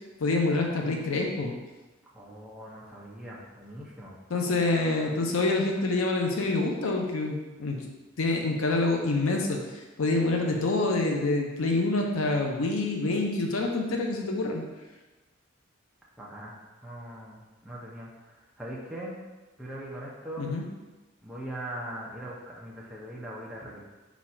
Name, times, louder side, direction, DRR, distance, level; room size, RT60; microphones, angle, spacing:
voice 1, 0.2-1.5 4.3-7.8 8.2-9.6 10.0-14.6 20.4-20.6, left 2 dB, 85° left, 1 dB, 0.6 m, -26 dB
voice 2, 2.1-4.2 16.2-16.5 16.8-18.1 18.6-19.2 19.6-20.5 21.2-23.8, right 1 dB, 5° right, -6 dB, 0.5 m, -40 dB
4.1 x 2.4 x 4.2 m, 1.2 s
head